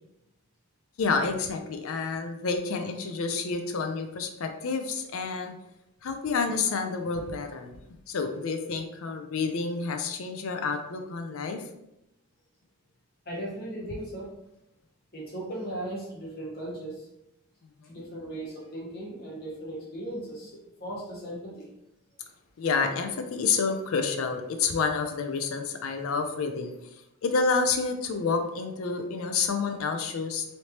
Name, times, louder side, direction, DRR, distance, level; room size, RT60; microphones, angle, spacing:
voice 1, 1.0-5.5 6.0-7.8 8.1-11.6 17.9-18.0 22.6-26.7 27.2-30.4, left 4 dB, 70° left, 6 dB, 0.4 m, -29 dB
voice 2, 13.3-14.3 15.1-17.1 17.9-21.7, right 1 dB, 45° left, -5 dB, 1.2 m, -37 dB
3.2 x 2.8 x 2.9 m, 0.84 s
head